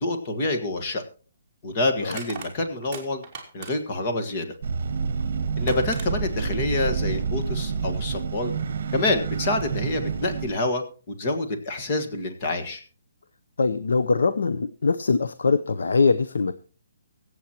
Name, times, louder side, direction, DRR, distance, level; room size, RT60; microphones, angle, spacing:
voice 1, 0.0-1.0 1.6-3.2 3.5-4.5 5.6-8.5 8.9-12.8, left 2 dB, 25° left, 4 dB, 1.6 m, -27 dB
Crushing, 0.7-0.8 2.0-4.0 5.2-5.3 5.7-6.1, right 5 dB, 10° right, 2.6 m, -39 dB
sound 1, 4.6-10.5, right 5 dB, 45° right, 1.5 m, -28 dB
voice 2, 13.6-16.6, left 4 dB, 85° left, 13 dB, 0.8 m, -22 dB
24.0 x 8.1 x 2.9 m, 0.38 s
hypercardioid pair, 175°, 0 cm